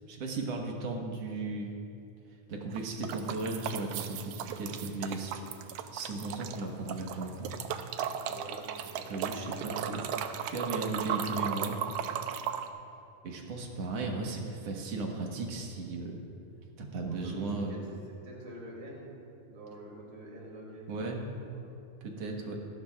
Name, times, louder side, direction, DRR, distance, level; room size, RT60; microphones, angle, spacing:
voice 1, 0.1-1.7 2.5-5.5 5.9-7.6 9.1-10.0 10.4-11.9 13.2-16.2 16.8-17.8 20.9-21.2 22.0-22.6, right 3 dB, 60° right, 0 dB, 2.3 m, -36 dB
sound 1, 2.7-6.6 6.9-12.7, right 9 dB, 85° right, 1.4 m, -36 dB
voice 2, 8.2-9.4 17.1-17.8 18.2-19.1 19.5-20.9 21.3-21.5, right 1 dB, 25° right, -4 dB, 2.7 m, -46 dB
25.5 x 12.0 x 2.4 m, 2.6 s
omnidirectional pair, 3.5 m